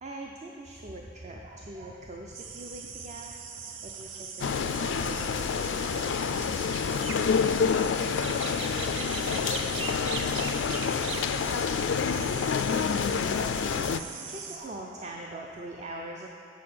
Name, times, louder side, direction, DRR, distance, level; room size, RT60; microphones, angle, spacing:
voice 1, 0.0-6.7 14.3-16.3, right 2 dB, 35° right, 0 dB, 0.5 m, -42 dB
sound 1, 2.3-14.6, right 5 dB, 85° right, 0.6 m, -39 dB
sound 2, 4.4-14.0, left 6 dB, 70° left, 0.3 m, -28 dB
voice 2, 7.8-8.4 8.8-10.2 10.8-12.4, right 1 dB, 55° right, -4 dB, 1.9 m, -48 dB
6.6 x 6.2 x 7.6 m, 2.8 s
head